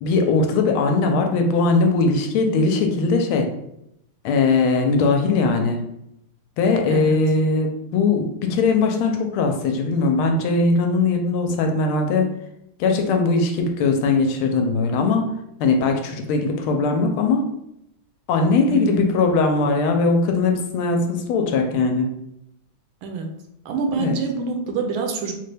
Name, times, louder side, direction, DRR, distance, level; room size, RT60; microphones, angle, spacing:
voice 1, 0.0-3.5 4.2-5.8 6.6-12.3 12.8-15.3 15.6-17.5 18.3-22.1 24.0-24.2, left 3 dB, 80° left, 4 dB, 1.4 m, -20 dB
voice 2, 18.7-19.1 23.0-23.3 23.6-25.4, right 4 dB, 80° right, 3 dB, 1.4 m, -26 dB
4.1 x 2.2 x 3.3 m, 0.79 s
omnidirectional pair, 2.4 m